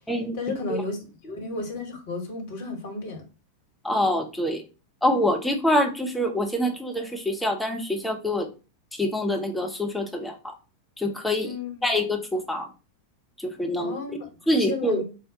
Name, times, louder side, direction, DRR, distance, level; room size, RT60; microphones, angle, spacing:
voice 1, 0.3-3.2 11.4-11.9 13.8-15.0, left 3 dB, 50° left, 1.2 m, -33 dB
voice 2, 3.8-4.6 5.0-8.5 9.0-10.5 11.0-11.5 11.8-12.7 13.4-13.9 14.5-15.0, left 1 dB, 5° left, 0.8 m, -25 dB
4.7 x 2.1 x 2.7 m
figure-of-eight pair, 90°, 0 cm